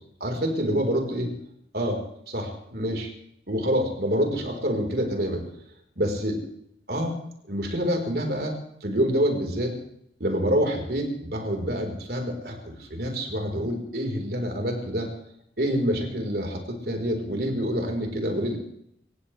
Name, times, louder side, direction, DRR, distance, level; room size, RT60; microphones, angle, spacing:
voice 1, 0.2-1.3 1.7-2.0 2.3-3.1 3.5-5.5 6.0-6.4 6.9-7.1 7.5-9.8 10.2-15.1 15.6-18.6, equal, 60° right, 2 dB, 4.2 m, -27 dB
27.5 x 15.5 x 3.3 m, 0.74 s
head